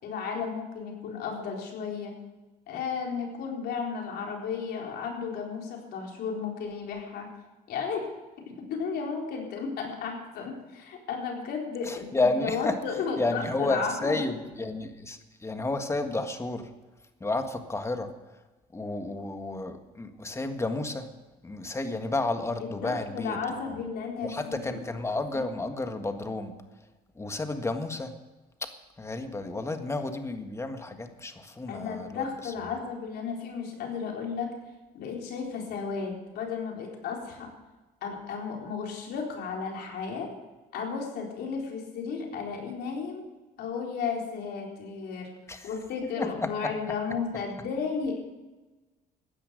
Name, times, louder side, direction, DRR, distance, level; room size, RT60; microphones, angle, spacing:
voice 1, 0.0-2.1 2.7-7.3 7.7-8.1 8.5-12.1 12.4-14.2 22.6-24.7 31.7-34.5 34.9-37.5 38.0-40.3 40.7-43.2 43.6-45.3 45.6-48.2, left 5 dB, 75° left, 0 dB, 4.1 m, -34 dB
voice 2, 11.8-12.8 13.2-16.7 17.2-18.2 18.7-21.1 21.4-23.6 24.2-26.6 27.1-28.1 28.6-28.7 29.0-32.5 45.5-45.7 46.2-46.7, left 2 dB, 15° left, 7 dB, 1.6 m, -31 dB
15.5 x 10.0 x 6.5 m, 1.1 s
cardioid pair, 110°, 17 cm